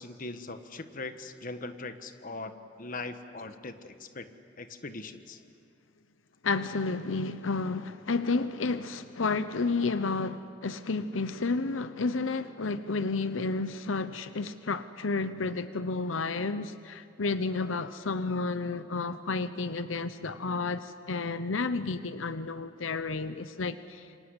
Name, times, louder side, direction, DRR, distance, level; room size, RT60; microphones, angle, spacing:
voice 1, 0.0-2.5 2.8-4.2 4.6-5.4, left 3 dB, 45° left, 9 dB, 1.4 m, -40 dB
voice 2, 6.4-24.1, left 3 dB, 90° left, 12 dB, 0.8 m, -31 dB
27.5 x 25.5 x 8.1 m, 2.3 s
head